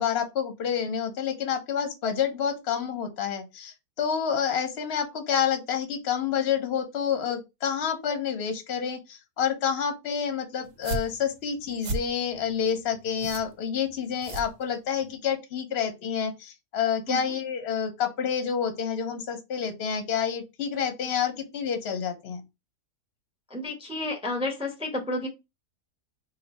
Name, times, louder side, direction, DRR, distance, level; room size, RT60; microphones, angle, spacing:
voice 1, 0.0-22.4, left 7 dB, 55° left, 0.8 m, -28 dB
sound 1, 10.6-15.1, right 3 dB, 65° right, 0.8 m, -37 dB
voice 2, 23.5-25.3, left 2 dB, 10° right, 0.4 m, -31 dB
2.6 x 2.6 x 4.0 m
omnidirectional pair, 1.7 m